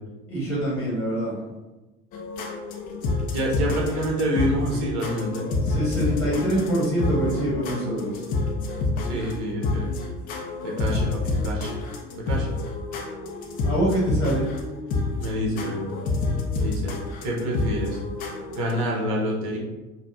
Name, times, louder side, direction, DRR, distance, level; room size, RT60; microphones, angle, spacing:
voice 1, 0.3-1.3 5.6-8.2 13.6-14.5, right 1 dB, 5° left, -5 dB, 1.3 m, -25 dB
sound 1, 2.1-18.7, left 3 dB, 20° left, 0.3 m, -28 dB
voice 2, 3.3-5.4 9.0-9.9 10.6-11.8 12.2-12.5 15.2-15.8 16.6-18.0 18.5-19.6, equal, 50° right, -2 dB, 1.1 m, -27 dB
4.0 x 2.2 x 3.8 m, 1.1 s
figure-of-eight pair, 75°, 46 cm